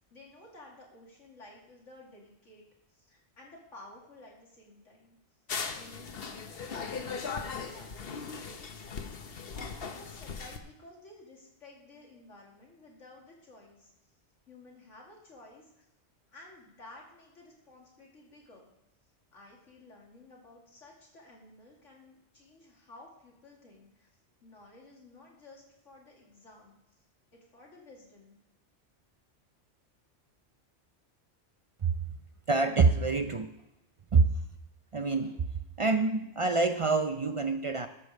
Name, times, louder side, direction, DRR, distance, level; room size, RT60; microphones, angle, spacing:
voice 1, 0.1-2.6 2.9-5.2 5.5-9.3 9.5-14.2 14.5-15.9 16.3-18.7 19.3-24.1 24.4-27.0 27.3-28.4, left 2 dB, 85° left, -2 dB, 2.7 m, -54 dB
sound 1, 5.5-10.6, left 5 dB, 55° left, 1.1 m, -38 dB
voice 2, 32.5-33.5 34.1-34.3 34.9-35.4 35.8-37.9, right 4 dB, 55° right, 8 dB, 0.3 m, -26 dB
12.5 x 5.2 x 6.3 m, 0.91 s
omnidirectional pair, 1.2 m